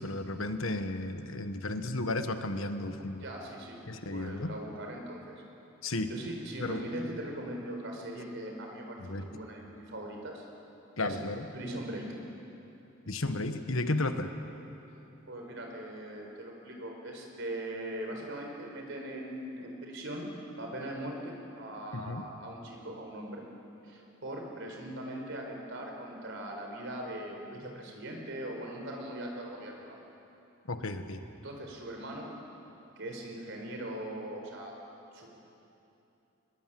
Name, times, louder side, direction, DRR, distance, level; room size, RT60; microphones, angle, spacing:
voice 1, 0.0-3.2 3.9-4.5 5.8-6.1 6.6-6.8 9.0-9.2 11.0-11.4 13.1-14.3 21.9-22.2 30.7-31.2, left 2 dB, 75° left, 8 dB, 1.4 m, -33 dB
voice 2, 3.2-3.8 4.1-5.3 6.1-10.4 11.0-11.2 11.5-12.1 15.3-20.3 20.6-23.4 23.8-30.0 31.4-32.3 33.0-34.7 35.1-35.3, right 1 dB, 60° right, 1 dB, 4.5 m, -40 dB
24.5 x 21.0 x 7.7 m, 2.9 s
head